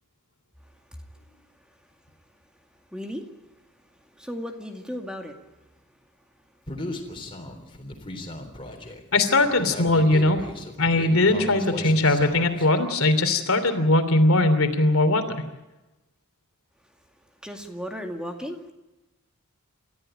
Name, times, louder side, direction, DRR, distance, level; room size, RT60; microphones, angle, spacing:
voice 1, 2.9-3.3 4.1-5.4 17.4-18.7, equal, 5° right, 3 dB, 2.2 m, -35 dB
Human voice, 6.7-12.7, left 1 dB, 25° left, 3.6 m, -37 dB
voice 2, 9.1-10.4 10.8-15.2, left 2 dB, 70° left, 8 dB, 3.0 m, -20 dB
29.0 x 14.5 x 9.0 m, 1.0 s
head